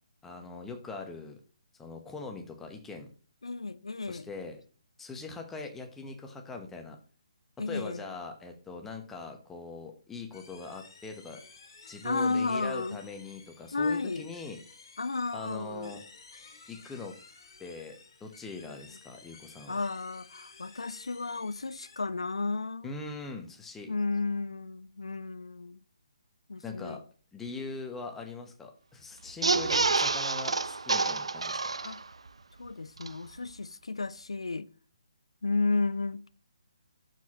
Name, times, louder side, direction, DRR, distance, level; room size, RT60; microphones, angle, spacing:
voice 1, 0.2-1.4 1.8-3.1 4.1-4.6 5.0-7.0 7.7-11.4 11.9-14.6 15.3-16.0 16.7-17.2 17.6-17.9 18.2-19.8 22.8-23.9 26.6-27.0 27.3-31.6, left 3 dB, 10° left, 1.0 m, -41 dB
voice 2, 3.4-4.3 7.6-8.0 12.0-13.0 13.7-14.3 15.0-16.0 19.7-22.9 23.9-25.8 26.5-27.0 31.8-32.0 32.6-34.7 35.4-36.4, left 3 dB, 70° left, 0.5 m, -32 dB
sound 1, 10.3-22.0, left 4 dB, 45° left, 1.9 m, -54 dB
sound 2, 29.3-32.3 32.6-32.7 33.0-33.1, right 3 dB, 70° right, 0.4 m, -28 dB
11.5 x 4.6 x 3.0 m
figure-of-eight pair, 140°, 3 cm